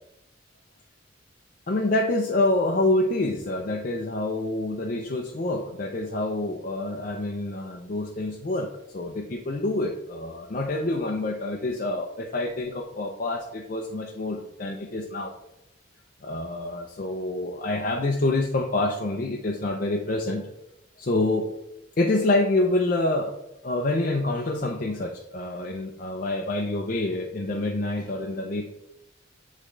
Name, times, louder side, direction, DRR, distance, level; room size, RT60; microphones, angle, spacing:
voice 1, 1.7-8.7 8.9-15.3 16.2-20.5 21.0-21.5 22.0-23.3 23.6-28.7, left 2 dB, 45° left, 1 dB, 0.5 m, -27 dB
8.4 x 3.6 x 3.3 m, 0.84 s
head